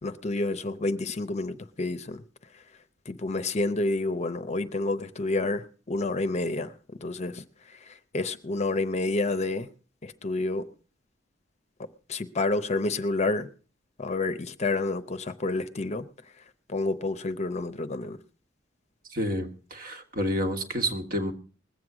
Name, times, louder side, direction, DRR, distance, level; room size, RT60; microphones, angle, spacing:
voice 1, 0.0-2.2 3.1-6.7 7.0-9.7 10.0-10.7 12.1-13.5 14.0-16.0 16.7-18.2, left 2 dB, 35° left, 0.7 m, -29 dB
voice 2, 19.1-21.3, equal, 50° right, 1.6 m, -29 dB
20.5 x 7.9 x 4.9 m
head